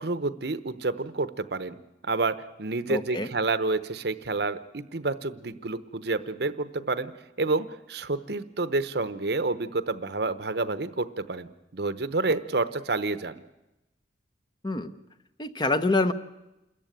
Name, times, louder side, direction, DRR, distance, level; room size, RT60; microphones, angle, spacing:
voice 1, 0.0-1.8 2.0-7.1 7.4-13.4, right 3 dB, 60° right, 13 dB, 0.9 m, -29 dB
voice 2, 2.9-3.3 14.6-14.9 15.4-16.1, left 2 dB, 25° left, 10 dB, 0.8 m, -25 dB
28.0 x 14.0 x 9.2 m, 0.96 s
head